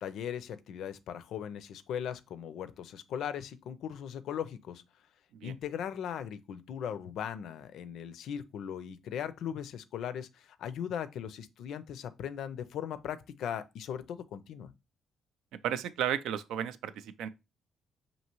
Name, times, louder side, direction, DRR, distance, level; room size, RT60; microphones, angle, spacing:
voice 1, 0.0-4.8 5.4-14.7, left 9 dB, 80° left, 0.4 m, -38 dB
voice 2, 15.5-17.3, right 10 dB, 85° right, 0.3 m, -34 dB
5.4 x 2.7 x 2.9 m
cardioid pair, 90°, 0 cm